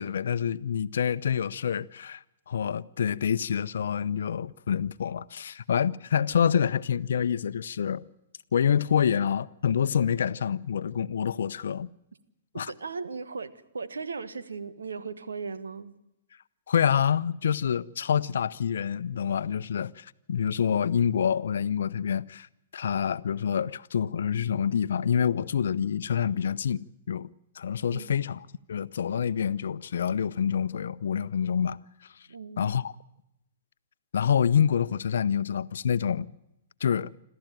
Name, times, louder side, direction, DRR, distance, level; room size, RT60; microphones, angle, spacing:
voice 1, 0.0-8.0 8.5-11.9 12.5-12.7 16.7-22.5 22.7-27.3 27.6-31.8 32.6-32.9 34.1-36.3 36.8-37.1, left 8 dB, 70° left, 0.8 m, -27 dB
voice 2, 12.5-16.0 27.9-28.1 32.3-32.7, right 4 dB, 80° right, 1.6 m, -37 dB
26.5 x 14.0 x 9.1 m
hypercardioid pair, 120°, 0 cm